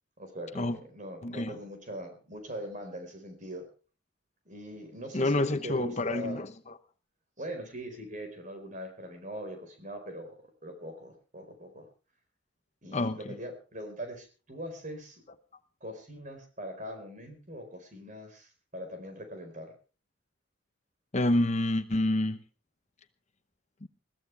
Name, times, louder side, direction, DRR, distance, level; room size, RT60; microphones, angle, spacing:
voice 1, 0.2-3.7 4.4-6.4 7.4-10.4 10.6-11.9 12.8-15.2 15.8-19.7, equal, 40° right, 4.5 m, -41 dB
voice 2, 1.2-1.6 5.1-6.5 12.9-13.4 21.1-22.4, left 1 dB, 35° left, 0.9 m, -28 dB
21.0 x 15.0 x 3.4 m
head